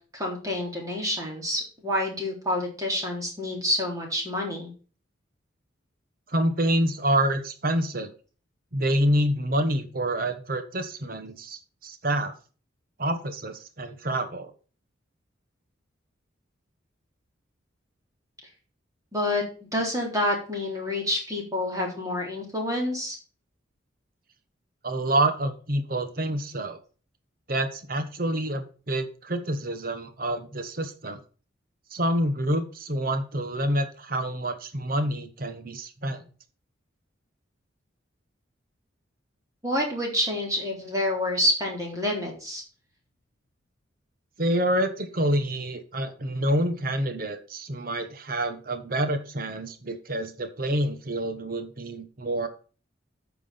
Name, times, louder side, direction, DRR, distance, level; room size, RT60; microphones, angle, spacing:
voice 1, 0.1-4.7 19.1-19.4 19.7-23.2 39.6-42.6, left 1 dB, 15° right, 0 dB, 3.6 m, -28 dB
voice 2, 6.3-8.1 8.7-12.3 13.0-14.5 24.8-26.8 27.5-31.2 31.9-36.2 44.4-52.5, right 1 dB, 45° right, 9 dB, 1.2 m, -27 dB
9.0 x 6.1 x 5.5 m, 0.37 s
head